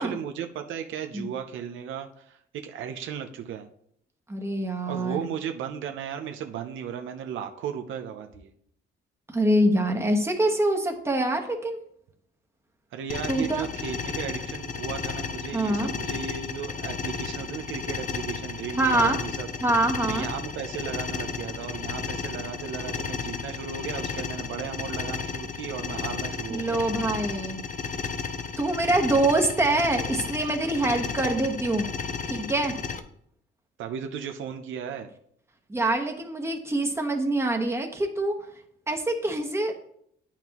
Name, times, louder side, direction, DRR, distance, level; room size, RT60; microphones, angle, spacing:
voice 1, 0.0-3.7 4.9-8.5 12.9-19.5 20.1-26.8 33.8-35.1, right 8 dB, 80° right, 6 dB, 0.7 m, -35 dB
voice 2, 4.3-5.2 9.3-11.8 13.3-13.7 15.5-15.9 18.8-19.2 19.6-20.3 26.5-27.7 28.6-31.9 32.3-32.7 35.7-38.4 38.9-39.8, right 1 dB, 15° right, 2 dB, 1.2 m, -25 dB
sound 1, 13.1-33.0, left 5 dB, 40° left, 0.6 m, -33 dB
9.0 x 5.8 x 3.0 m, 0.69 s
cardioid pair, 90°, 20 cm